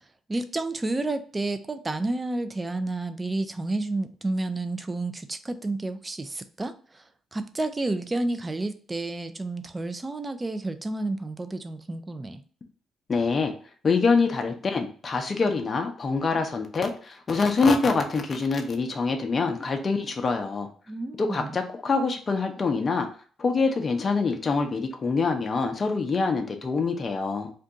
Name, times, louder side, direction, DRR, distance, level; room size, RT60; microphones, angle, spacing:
voice 1, 0.3-7.0 7.3-12.4 20.9-21.6, right 2 dB, 20° right, 9 dB, 0.3 m, -30 dB
voice 2, 13.1-13.5 13.8-20.7 21.2-23.1 23.4-27.5, left 4 dB, 35° left, 4 dB, 0.5 m, -25 dB
2.6 x 2.2 x 3.7 m, 0.42 s
cardioid pair, 90°, 0 cm